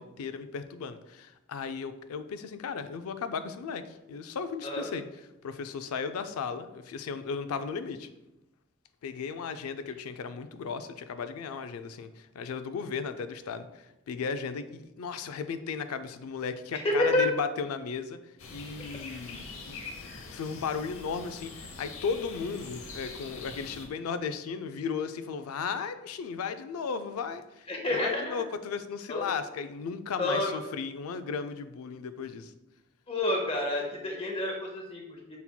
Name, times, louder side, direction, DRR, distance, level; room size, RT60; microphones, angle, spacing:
voice 1, 0.0-5.0 5.4-8.1 9.0-18.2 18.5-27.7 28.0-32.5, left 5 dB, 90° left, 10 dB, 0.4 m, -35 dB
voice 2, 16.7-17.2 27.7-28.4 29.1-29.3 30.2-30.6 33.1-35.4, left 1 dB, 25° left, 1 dB, 0.8 m, -29 dB
sound 1, 18.4-23.9, left 3 dB, 75° left, 0.8 m, -44 dB
5.8 x 4.1 x 2.2 m, 0.97 s
head